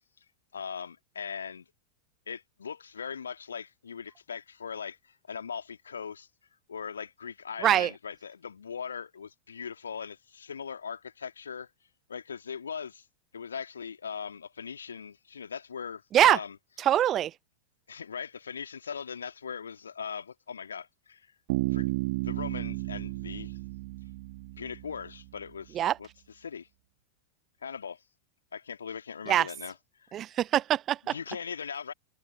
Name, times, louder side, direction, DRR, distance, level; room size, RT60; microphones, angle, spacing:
voice 1, 0.5-1.7 2.3-6.3 6.7-11.7 12.1-13.1 13.3-16.6 17.9-21.3 21.7-21.9 22.2-23.6 24.6-26.7 27.6-28.0 28.5-29.8 31.0-31.9, left 6 dB, 70° left, 2.2 m, -40 dB
voice 2, 16.8-17.3 25.7-26.0 29.3-29.5 30.1-31.0, right 11 dB, 30° right, 0.7 m, -23 dB
Bass guitar, 21.5-25.2, right 22 dB, 50° right, 1.6 m, -33 dB
figure-of-eight pair, 90°, 0 cm